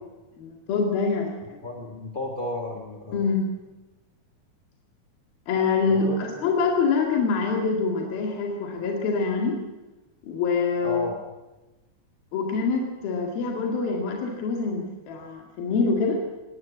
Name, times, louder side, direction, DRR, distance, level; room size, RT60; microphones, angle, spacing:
voice 1, 0.4-1.6 3.1-3.5 5.5-9.6 10.2-11.1 12.3-16.2, left 4 dB, 75° left, 1 dB, 4.0 m, -25 dB
voice 2, 1.6-3.3 5.9-6.2 10.8-11.2, left 1 dB, 30° left, 2 dB, 0.9 m, -33 dB
21.5 x 17.5 x 8.5 m, 1.1 s
omnidirectional pair, 4.2 m